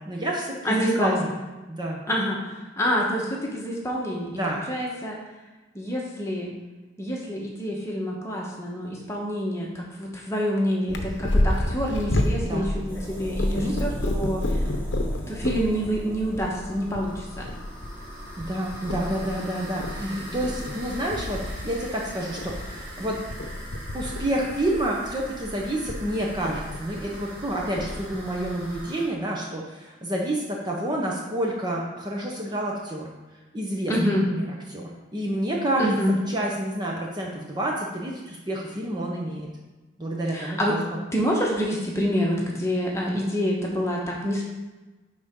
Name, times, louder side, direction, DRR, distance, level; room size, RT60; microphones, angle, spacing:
voice 1, 0.0-1.3 1.7-2.0 4.4-4.6 12.4-12.7 13.5-13.7 18.4-23.2 23.9-33.1 33.5-35.9 36.3-39.5 40.0-41.0, right 1 dB, 20° right, -2 dB, 0.8 m, -29 dB
voice 2, 0.6-1.4 2.1-5.2 5.7-6.5 7.0-14.6 15.3-17.5 20.0-20.2 33.9-34.3 35.8-36.2 40.3-40.8 41.1-44.4, equal, 15° left, -2 dB, 1.1 m, -27 dB
Purr, 10.9-28.8, left 1 dB, 65° left, 0.8 m, -31 dB
sound 1, 12.9-29.1, right 1 dB, 45° right, 2.3 m, -43 dB
10.0 x 4.0 x 3.7 m, 1.1 s
head